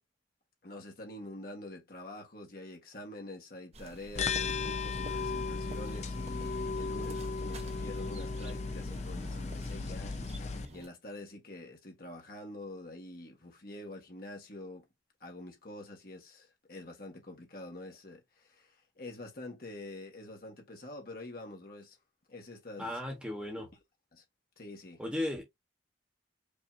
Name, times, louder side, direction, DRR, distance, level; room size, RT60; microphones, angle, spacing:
voice 1, 0.6-14.8 15.2-22.0 22.3-23.0 24.1-24.2 24.6-25.0, left 1 dB, 55° left, 1.5 m, -46 dB
sound 1, 3.7-10.9, right 1 dB, 35° right, 0.9 m, -50 dB
sound 2, 4.1-10.6, left 4 dB, 40° left, 0.4 m, -35 dB
voice 2, 22.8-23.7 25.0-25.5, left 1 dB, 5° right, 1.3 m, -35 dB
5.3 x 2.9 x 2.7 m
head